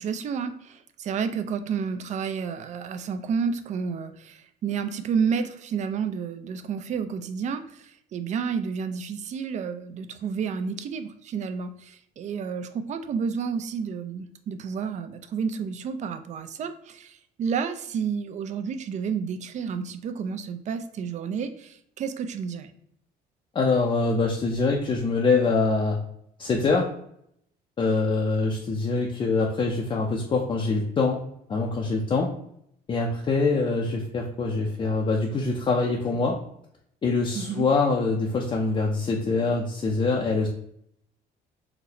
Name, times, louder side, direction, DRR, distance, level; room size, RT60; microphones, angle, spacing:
voice 1, 0.0-22.7 37.3-37.7, right 6 dB, 45° right, 9 dB, 0.4 m, -30 dB
voice 2, 23.5-26.0 26.4-26.9 27.8-31.2 31.5-32.3 32.9-36.4 37.0-40.5, left 3 dB, 30° left, 0 dB, 0.4 m, -24 dB
3.9 x 2.1 x 2.7 m, 0.71 s
cardioid pair, 110°, 17 cm